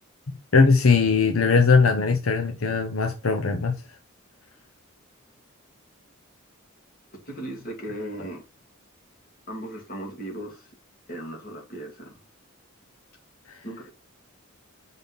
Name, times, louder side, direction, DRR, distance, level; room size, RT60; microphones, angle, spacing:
voice 1, 0.5-3.7, left 4 dB, 80° left, 0.8 m, -20 dB
voice 2, 7.1-8.4 9.5-10.7 11.1-12.2 13.6-13.9, right 1 dB, 45° left, 2.5 m, -37 dB
5.4 x 4.1 x 5.5 m
head